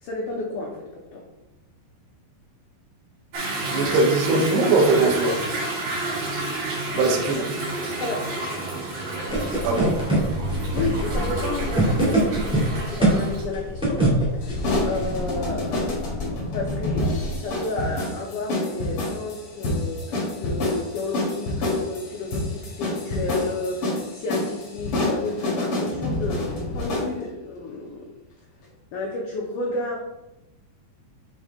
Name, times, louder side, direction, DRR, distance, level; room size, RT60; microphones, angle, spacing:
voice 1, 0.0-1.2 6.9-8.4 10.5-14.1 14.4-16.1 16.4-28.1 28.9-30.0, left 2 dB, 80° left, -1 dB, 1.8 m, -32 dB
Toilet flush / Drip / Trickle dribble, 3.3-13.4, right 2 dB, 50° right, 3.3 m, -30 dB
voice 2, 3.6-5.4 7.0-7.4 9.6-10.0, right 3 dB, 75° right, 1 dB, 2.8 m, -20 dB
sound 1, 9.3-17.3, right 1 dB, 5° right, 0.7 m, -25 dB
sound 2, 14.4-27.1, left 1 dB, 55° left, 1.6 m, -28 dB
7.0 x 5.2 x 3.6 m, 0.98 s
omnidirectional pair, 4.9 m